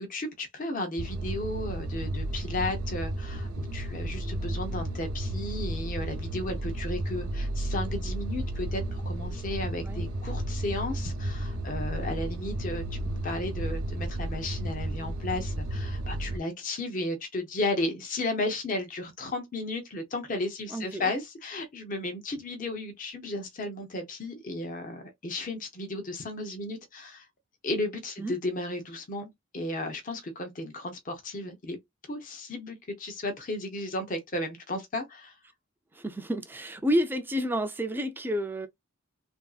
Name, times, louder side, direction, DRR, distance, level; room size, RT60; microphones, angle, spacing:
voice 1, 0.0-27.2 27.6-31.8 32.1-35.3, left 2 dB, 40° left, 0.6 m, -34 dB
sound 1, 1.0-16.4, right 1 dB, 90° right, 0.5 m, -33 dB
voice 2, 20.7-21.1 28.2-28.4 35.9-38.7, equal, 10° right, 0.3 m, -30 dB
3.0 x 2.6 x 2.3 m
head